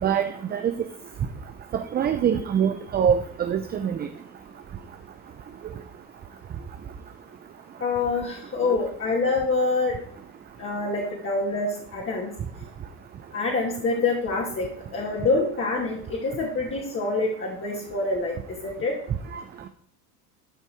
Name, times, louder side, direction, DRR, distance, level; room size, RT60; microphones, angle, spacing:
voice 1, 0.0-0.7 1.7-4.1 8.7-8.8 19.3-19.4, right 8 dB, 20° right, 8 dB, 0.6 m, -24 dB
voice 2, 7.8-9.9 10.6-12.3 13.3-18.9, left 3 dB, 30° left, -2 dB, 2.5 m, -26 dB
12.5 x 5.4 x 4.7 m, 0.62 s
hypercardioid pair, 95°, 44 cm